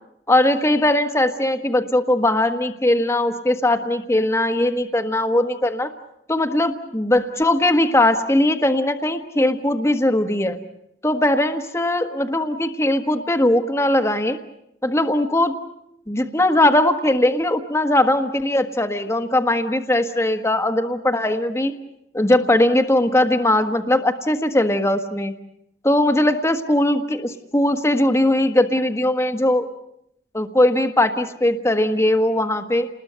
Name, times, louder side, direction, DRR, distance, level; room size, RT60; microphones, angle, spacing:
voice 1, 0.3-5.9 6.3-10.6 11.0-14.4 14.8-15.5 16.1-21.7 22.1-25.3 25.8-29.7 30.3-32.9, left 1 dB, 15° left, 7 dB, 1.4 m, -19 dB
29.5 x 20.5 x 6.9 m, 0.79 s
head